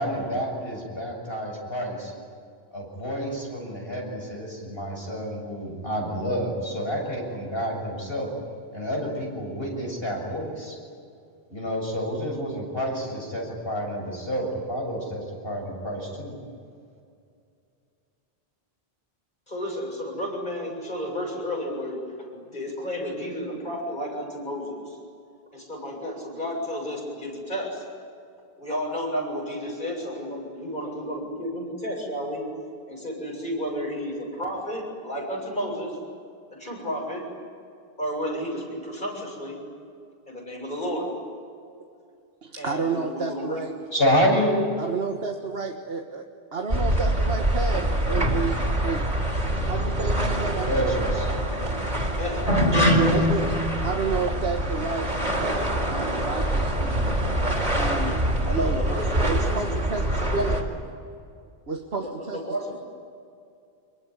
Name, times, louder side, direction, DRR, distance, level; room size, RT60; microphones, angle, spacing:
voice 1, 0.0-2.1 2.7-8.3 8.7-10.8 11.5-16.3 43.9-44.5 50.6-51.3, equal, 65° left, 0 dB, 7.6 m, -28 dB
voice 2, 19.5-22.0 22.3-25.0 25.5-27.8 28.6-32.5 32.9-36.0 36.5-37.3 38.0-39.6 40.3-41.1 42.6-43.6 52.2-52.6 53.0-53.3 58.5-59.6 60.3-60.5 62.0-62.8, equal, 50° left, -1 dB, 8.0 m, -32 dB
voice 3, 42.4-43.7 44.8-49.1 49.6-51.0 53.1-55.1 55.4-57.1 57.7-60.6 61.7-62.4, right 4 dB, 70° right, 2 dB, 1.7 m, -31 dB
sound 1, 46.7-60.6, right 1 dB, 40° right, 4.1 m, -24 dB
26.5 x 22.5 x 9.9 m, 2.4 s
omnidirectional pair, 1.1 m